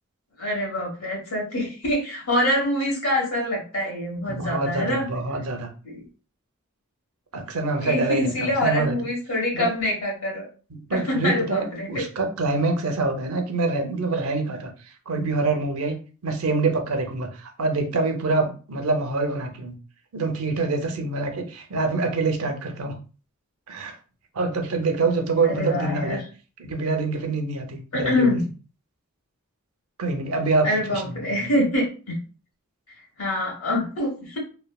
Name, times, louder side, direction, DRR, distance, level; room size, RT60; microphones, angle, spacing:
voice 1, 0.4-5.1 5.8-6.0 7.8-10.4 10.9-12.0 25.4-26.2 27.9-28.4 30.6-32.2 33.2-34.4, left 1 dB, 75° left, -2 dB, 1.3 m, -25 dB
voice 2, 4.3-5.7 7.3-9.0 9.5-9.7 10.7-14.7 15.1-16.0 16.2-19.7 20.1-23.0 23.7-23.9 24.3-26.2 26.6-28.4 30.0-31.5, right 3 dB, 85° right, 5 dB, 0.6 m, -25 dB
3.1 x 2.1 x 2.3 m, 0.37 s
head